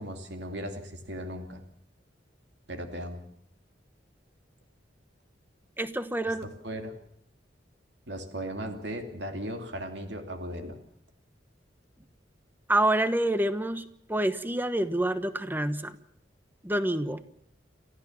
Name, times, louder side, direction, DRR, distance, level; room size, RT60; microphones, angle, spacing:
voice 1, 0.0-1.6 2.7-3.2 6.2-6.3 6.6-6.9 8.1-10.8, equal, 65° right, 5 dB, 2.8 m, -37 dB
voice 2, 5.8-6.5 12.7-13.8 14.1-16.0 16.6-17.2, right 1 dB, 10° right, 12 dB, 1.1 m, -27 dB
29.0 x 14.5 x 7.4 m, 0.70 s
head